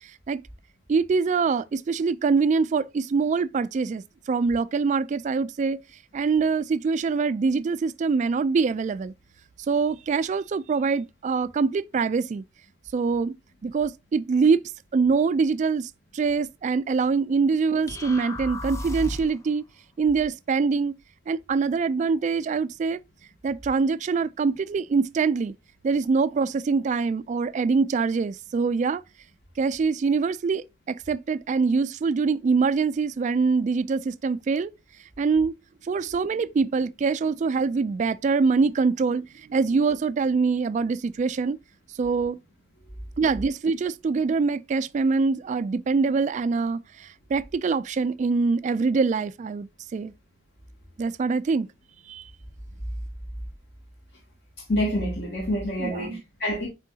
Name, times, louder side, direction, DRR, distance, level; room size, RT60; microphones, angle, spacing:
voice 1, 0.9-5.8 6.1-9.1 9.7-12.4 12.9-13.3 13.6-14.6 14.9-19.6 20.0-20.9 21.3-23.0 23.4-25.6 25.8-29.0 29.6-34.7 35.2-35.5 35.8-41.6 42.0-42.4 43.2-50.1 51.0-51.7 52.1-52.2 55.8-56.2, right 4 dB, 40° right, 0.3 m, -24 dB
sound 1, 17.9-19.5, left 1 dB, 15° left, 0.6 m, -33 dB
voice 2, 54.7-56.7, equal, 60° left, 2.4 m, -27 dB
9.7 x 3.7 x 2.7 m
head